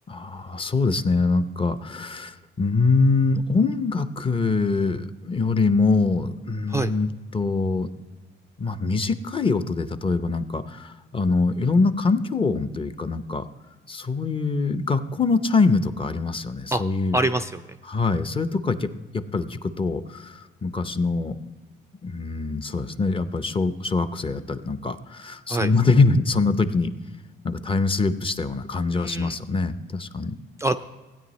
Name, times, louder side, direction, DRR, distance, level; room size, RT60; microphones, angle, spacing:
voice 1, 0.1-7.1 7.3-7.9 8.6-13.4 13.9-17.2 17.9-18.9 19.1-21.4 22.0-26.9 27.4-30.4, left 3 dB, 25° left, 11 dB, 0.6 m, -24 dB
voice 2, 17.1-17.6 25.5-25.7 28.9-29.4 30.6-30.7, right 2 dB, 15° right, 8 dB, 0.3 m, -25 dB
16.0 x 9.2 x 3.1 m, 1.2 s
cardioid pair, 90°, 20 cm